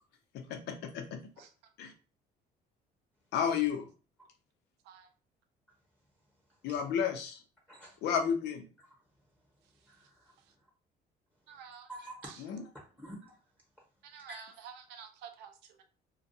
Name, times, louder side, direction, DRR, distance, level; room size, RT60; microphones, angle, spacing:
voice 1, 0.3-1.2 1.8-1.9 3.3-3.9 6.6-7.4 8.0-8.7 12.5-12.6, left 7 dB, 80° left, 0.6 m, -32 dB
voice 2, 6.5-6.8 7.7-8.1 8.9-9.0 9.6-10.7 11.9-12.3 12.7-13.4 14.3-14.6, right 1 dB, 10° left, 1.0 m, -50 dB
voice 3, 11.5-11.9 12.2-12.4 14.0-15.8, right 7 dB, 85° right, 0.6 m, -50 dB
2.3 x 2.2 x 2.6 m
cardioid pair, 110°, 17 cm